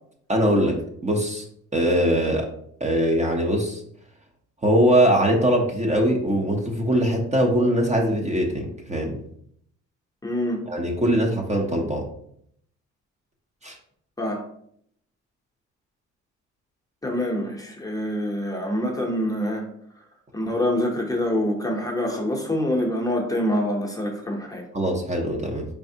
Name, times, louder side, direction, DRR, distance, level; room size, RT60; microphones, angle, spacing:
voice 1, 0.3-0.8 1.0-1.4 1.7-2.5 2.8-3.8 4.6-9.2 10.7-12.0 13.6-13.7 24.7-25.6, equal, 25° right, 0 dB, 0.7 m, -21 dB
voice 2, 10.2-10.6 14.2-14.4 17.0-19.7 20.3-24.6, left 1 dB, 10° left, 0 dB, 0.8 m, -25 dB
4.0 x 3.4 x 2.7 m, 0.68 s
cardioid pair, 90°, 30 cm